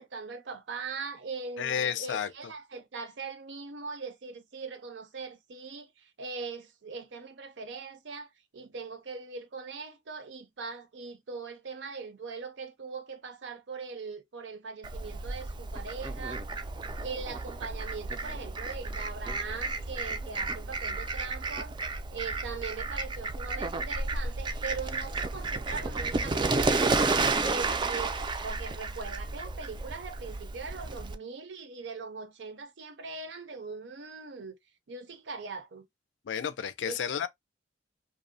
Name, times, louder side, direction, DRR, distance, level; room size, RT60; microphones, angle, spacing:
voice 1, 0.0-16.4 17.0-21.8 22.1-34.5 34.9-35.9 36.8-37.0, right 4 dB, 75° right, 0.6 m, -41 dB
voice 2, 1.6-2.3 36.3-37.3, left 8 dB, 90° left, 0.4 m, -31 dB
Fowl, 14.8-31.1, right 3 dB, 25° right, 0.3 m, -32 dB
2.7 x 2.0 x 2.5 m
head